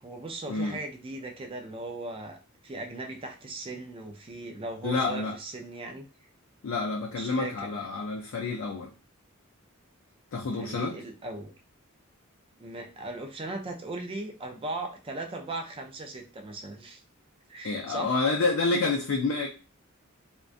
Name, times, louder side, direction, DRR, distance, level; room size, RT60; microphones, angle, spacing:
voice 1, 0.0-6.1 7.2-7.8 10.6-11.5 12.6-17.0 17.5-18.2, right 2 dB, 25° right, 0.4 m, -38 dB
voice 2, 4.8-5.4 6.6-8.9 10.3-11.0 17.6-19.5, left 3 dB, 65° left, 0.4 m, -28 dB
2.4 x 2.2 x 2.5 m
head